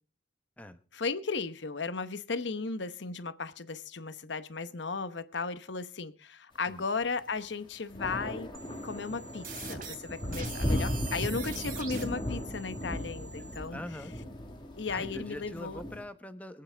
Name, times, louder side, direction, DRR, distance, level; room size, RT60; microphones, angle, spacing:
voice 1, 0.9-8.5 8.8-13.8 14.8-15.8, left 4 dB, 65° left, 12 dB, 1.0 m, -35 dB
sound 1, 7.9-16.0, equal, 25° left, 1.7 m, -36 dB
sound 2, 8.5-13.6, right 5 dB, 45° right, 3.1 m, -44 dB
voice 2, 13.7-14.2 14.9-16.6, left 1 dB, 10° left, 9 dB, 1.0 m, -43 dB
25.0 x 8.9 x 3.5 m, 0.37 s
head